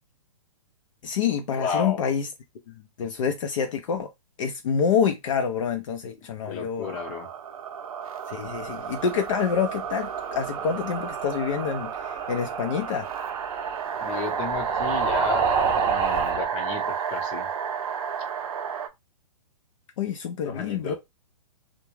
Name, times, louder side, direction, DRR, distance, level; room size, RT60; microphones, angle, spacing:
voice 1, 1.0-2.3 2.7-4.1 4.4-7.0 8.3-13.1 20.0-20.9, left 7 dB, 65° left, 0.5 m, -27 dB
voice 2, 1.6-2.0 6.5-7.3 14.0-15.5 15.8-17.5 20.4-20.9, left 6 dB, 30° left, 0.7 m, -32 dB
sound 1, 6.8-18.9, right 8 dB, 75° right, 0.6 m, -32 dB
sound 2, 9.7-16.4, right 5 dB, 25° right, 0.5 m, -30 dB
2.3 x 2.1 x 3.1 m
hypercardioid pair, 140°, 18 cm